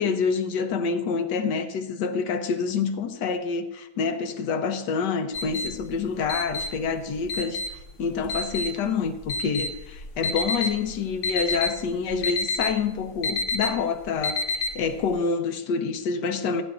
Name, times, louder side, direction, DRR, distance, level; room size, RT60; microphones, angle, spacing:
voice 1, 0.0-16.6, left 5 dB, 80° left, 1.4 m, -27 dB
sound 1, 5.3-15.1, left 3 dB, 60° left, 0.8 m, -30 dB
15.0 x 9.7 x 2.5 m
omnidirectional pair, 1.8 m